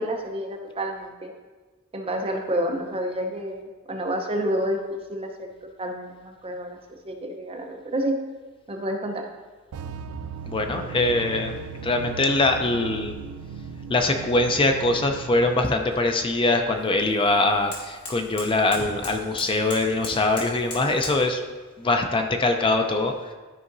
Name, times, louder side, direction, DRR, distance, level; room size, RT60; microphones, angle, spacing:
voice 1, 0.0-1.3 1.9-5.5 5.8-6.8 7.0-8.2 8.7-9.3, equal, 25° right, 2 dB, 0.7 m, -29 dB
sound 1, 9.7-15.5, right 5 dB, 80° right, 0.3 m, -37 dB
voice 2, 10.5-11.5 11.8-13.1 13.9-21.4 21.8-23.1, left 2 dB, 25° left, 5 dB, 0.5 m, -23 dB
sound 2, 14.4-21.2, left 2 dB, 85° left, 2.4 m, -41 dB
12.5 x 4.9 x 2.6 m, 1.3 s
head